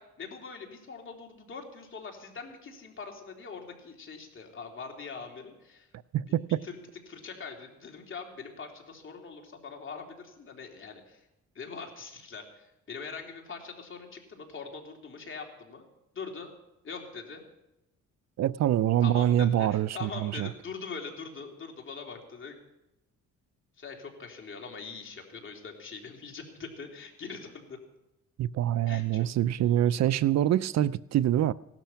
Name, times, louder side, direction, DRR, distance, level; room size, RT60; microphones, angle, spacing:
voice 1, 0.0-5.9 6.3-6.8 7.1-11.3 11.5-15.8 16.1-16.5 16.8-17.4 19.0-22.5 23.8-27.8 28.9-29.3 29.6-29.8, left 5 dB, 40° left, 3.3 m, -42 dB
voice 2, 6.1-6.6 18.4-20.5 28.4-31.5, right 12 dB, 60° right, 0.5 m, -25 dB
17.0 x 12.0 x 5.8 m
cardioid pair, 90°, 30 cm